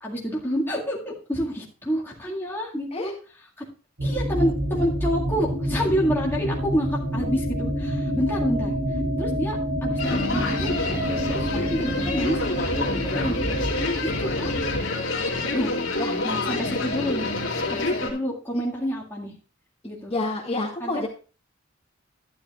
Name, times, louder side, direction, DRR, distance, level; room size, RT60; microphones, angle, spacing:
voice 1, 0.0-3.1 3.6-3.7 4.0-8.7 9.2-10.7 11.3-13.5 14.0-14.5 15.5-15.7 16.2-17.3 17.7-19.3 19.8-20.1 20.8-21.1, equal, 10° left, -5 dB, 2.0 m, -28 dB
sound 1, 4.0-14.8, equal, 75° right, 4.0 m, -28 dB
sound 2, 10.0-18.1, left 2 dB, 75° left, 2.3 m, -27 dB
voice 2, 20.1-21.1, left 2 dB, 30° left, -1 dB, 1.9 m, -28 dB
12.0 x 10.0 x 2.4 m, 0.36 s
head